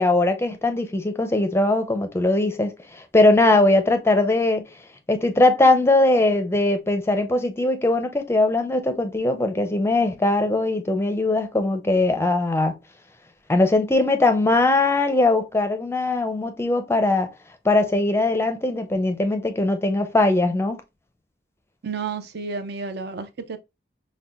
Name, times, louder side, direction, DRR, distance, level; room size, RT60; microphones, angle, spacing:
voice 1, 0.0-4.6 5.1-12.8 13.5-17.3 17.6-20.8, left 2 dB, 15° left, 0.5 m, -20 dB
voice 2, 21.8-23.6, right 5 dB, 60° right, 0.5 m, -31 dB
5.5 x 2.2 x 2.4 m
head